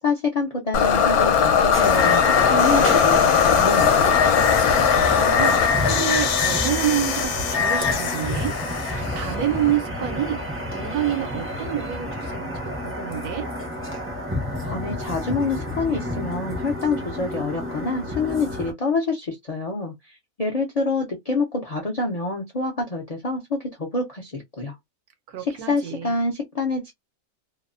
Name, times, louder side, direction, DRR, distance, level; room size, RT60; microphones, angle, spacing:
voice 1, 0.0-4.1 14.6-24.8 25.4-26.9, left 3 dB, 55° left, 0.4 m, -27 dB
sound 1, 0.7-9.8, left 7 dB, 80° left, 1.1 m, -20 dB
sound 2, 1.7-18.7, left 1 dB, 20° right, 0.3 m, -30 dB
voice 2, 4.5-8.5 8.8-10.4 10.7-13.5 25.3-26.1, right 11 dB, 80° right, 1.2 m, -28 dB
2.9 x 2.0 x 2.4 m
omnidirectional pair, 1.6 m